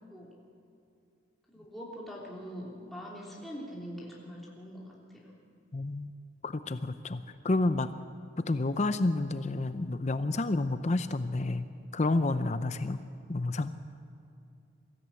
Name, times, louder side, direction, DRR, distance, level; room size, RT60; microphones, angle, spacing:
voice 1, 1.5-4.9, equal, ahead, -5 dB, 3.0 m, -43 dB
voice 2, 5.7-6.1 6.4-7.9 8.5-11.6 11.9-13.0 13.3-13.7, left 2 dB, 35° left, 11 dB, 0.6 m, -29 dB
23.0 x 14.0 x 8.3 m, 2.6 s
head